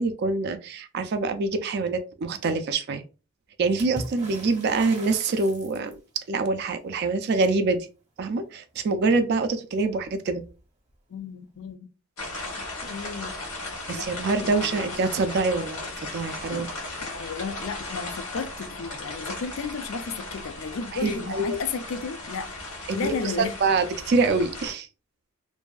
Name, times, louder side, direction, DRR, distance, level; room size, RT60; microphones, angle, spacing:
voice 1, 0.0-3.0 3.6-6.0 6.3-7.9 8.2-10.4 13.9-16.7 21.0-21.6 23.0-24.9, right 3 dB, 50° right, 0.3 m, -25 dB
Water / Splash splatter, 3.8-6.2 9.5-9.6 9.8-10.6 11.7-11.8, right 1 dB, 30° right, 0.7 m, -40 dB
voice 2, 11.1-11.9 12.9-13.4 13.9-14.1 14.4-15.0 16.5-16.7 17.0-22.5 22.9-23.5, left 5 dB, 65° left, 0.4 m, -33 dB
sound 1, 12.2-24.7, left 2 dB, 85° left, 1.1 m, -37 dB
2.6 x 2.3 x 2.3 m
head